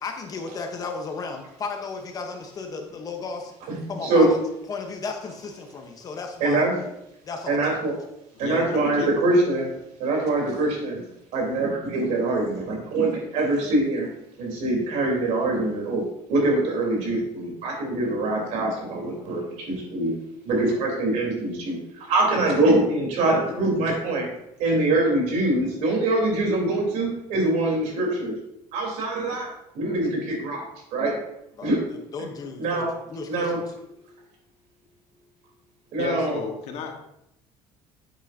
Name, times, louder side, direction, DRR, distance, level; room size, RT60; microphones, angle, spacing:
voice 1, 0.0-3.5 3.9-4.4 4.7-6.7 7.2-7.8 31.6-33.6, left 4 dB, 30° left, 4 dB, 1.0 m, -34 dB
voice 2, 3.7-4.3 6.4-6.7 7.5-7.9 8.4-9.7 10.0-11.0 11.3-14.1 14.4-16.0 16.3-20.1 20.4-24.3 24.6-28.3 28.7-29.5 29.7-30.6 30.9-31.2 31.6-31.8 32.6-32.9 33.3-33.6 35.9-36.4, right 2 dB, 70° right, 0 dB, 3.6 m, -23 dB
voice 3, 8.3-9.1 36.0-36.9, left 5 dB, 60° left, 2 dB, 1.5 m, -32 dB
9.5 x 8.3 x 2.8 m, 0.81 s
cardioid pair, 165°, 12 cm